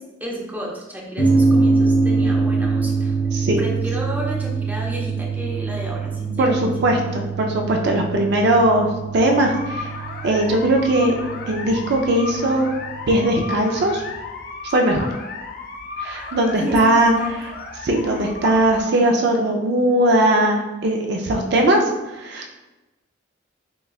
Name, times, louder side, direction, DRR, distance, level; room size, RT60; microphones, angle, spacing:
voice 1, 0.2-3.1 3.6-6.7 16.6-16.8 17.2-17.3, equal, 10° right, -3 dB, 0.6 m, -31 dB
sound 1, 1.2-14.1, right 4 dB, 85° left, 1.2 m, -24 dB
voice 2, 3.3-3.6 6.4-8.9 9.1-9.9 10.2-11.1 11.5-12.7 13.1-14.0 14.6-15.1 16.0-17.5 17.8-21.8 22.1-22.4, right 1 dB, 55° right, 2 dB, 0.4 m, -19 dB
sound 2, 9.3-18.8, left 4 dB, 50° left, 0.4 m, -34 dB
6.1 x 2.2 x 2.3 m, 1.1 s
head